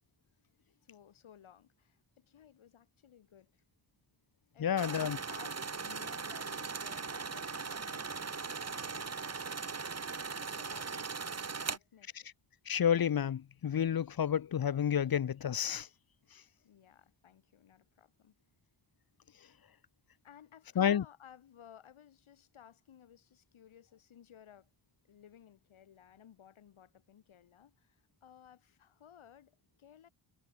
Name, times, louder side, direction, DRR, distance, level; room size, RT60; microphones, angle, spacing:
voice 1, 0.8-3.5 4.5-9.9 10.4-12.3 16.6-18.3 20.2-24.7 25.1-30.1, left 9 dB, 80° left, 3.9 m, -58 dB
voice 2, 4.6-5.2 12.7-15.9 20.8-21.0, left 9 dB, 50° left, 0.8 m, -30 dB
sound 1, 4.8-11.8, right 5 dB, 30° right, 1.4 m, -39 dB
supercardioid pair, 45°, 48 cm